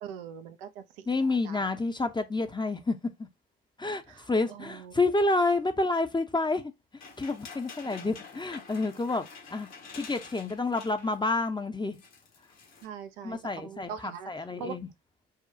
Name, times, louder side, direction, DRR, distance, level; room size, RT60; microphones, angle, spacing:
voice 1, 0.0-1.7 4.1-5.0 7.8-7.9 12.8-14.7, right 7 dB, 65° right, 0.6 m, -43 dB
voice 2, 1.1-3.3 3.8-6.7 7.2-9.3 9.5-9.7 9.9-12.0 13.2-14.9, left 3 dB, 15° left, 0.8 m, -29 dB
sound 1, 7.0-11.3 11.6-11.7 11.9-12.9, left 5 dB, 60° left, 1.7 m, -48 dB
4.9 x 2.3 x 2.8 m
figure-of-eight pair, 45°, 30 cm